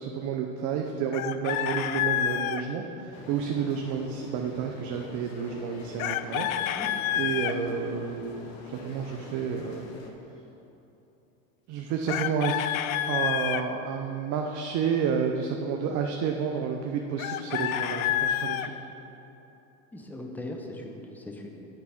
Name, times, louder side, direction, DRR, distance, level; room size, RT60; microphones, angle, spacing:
voice 1, 0.0-6.8 7.1-9.9 11.7-12.7 13.1-18.7, right 6 dB, 45° right, 3 dB, 0.7 m, -30 dB
Chicken rooster, 1.1-2.6 6.0-7.6 12.1-13.6 17.2-18.7, left 11 dB, 80° left, 0.5 m, -28 dB
sound 1, 3.1-10.1, left 3 dB, 40° left, 1.2 m, -45 dB
voice 2, 19.9-21.7, left 1 dB, 5° left, 2 dB, 0.8 m, -39 dB
8.7 x 4.7 x 5.8 m, 3.0 s
supercardioid pair, 105°, 41 cm